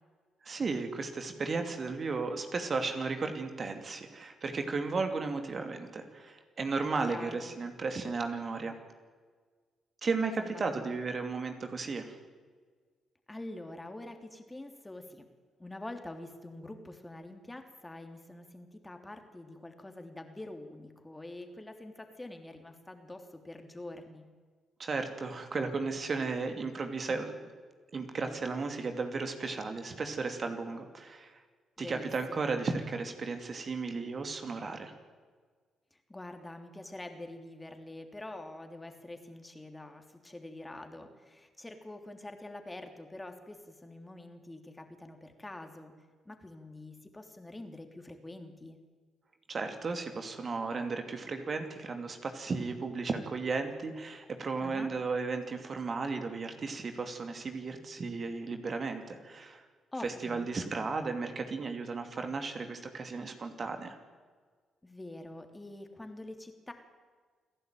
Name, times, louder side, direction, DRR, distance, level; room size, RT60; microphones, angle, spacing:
voice 1, 0.4-8.7 10.0-12.2 24.8-27.3 27.9-31.4 31.8-34.9 49.5-59.6 60.0-63.9, right 4 dB, 45° right, 6 dB, 2.6 m, -34 dB
voice 2, 7.1-7.5 10.4-10.9 13.3-15.3 15.6-24.2 31.8-32.5 35.9-45.9 46.2-48.8 54.6-54.9 59.9-60.5 64.8-66.7, left 2 dB, 15° left, 5 dB, 3.2 m, -45 dB
28.5 x 11.0 x 9.3 m, 1.5 s
hypercardioid pair, 45°, 0 cm